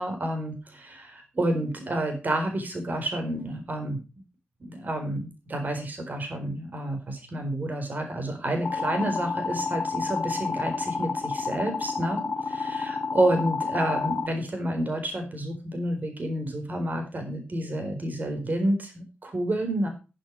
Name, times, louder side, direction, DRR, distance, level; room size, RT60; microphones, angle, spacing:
voice 1, 0.0-4.0 4.6-19.9, right 1 dB, 45° right, 4 dB, 4.3 m, -29 dB
sound 1, 8.6-14.3, left 4 dB, 45° left, 1.9 m, -30 dB
12.5 x 7.6 x 4.7 m, 0.31 s
wide cardioid pair, 100°, 4 cm